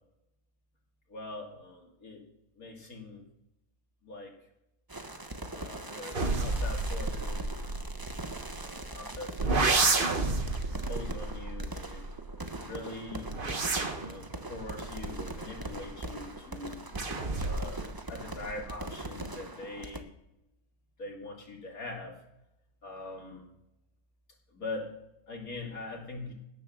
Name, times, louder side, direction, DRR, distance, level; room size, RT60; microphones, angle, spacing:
voice 1, 1.1-2.2 2.6-3.2 4.0-4.3 5.5-7.8 8.6-12.0 12.6-13.3 14.0-14.2 14.5-16.8 17.3-20.1 21.0-22.1 22.8-23.4 24.5-24.9 25.3-26.3, left 2 dB, 80° left, 0 dB, 3.3 m, -42 dB
sound 1, 4.9-20.0, right 2 dB, 20° right, 0.9 m, -41 dB
sound 2, 6.1-8.9 9.4-12.5 13.1-16.1 16.9-17.9 18.2-18.7, right 3 dB, 40° right, 1.5 m, -31 dB
17.0 x 6.7 x 6.5 m, 0.88 s
omnidirectional pair, 1.5 m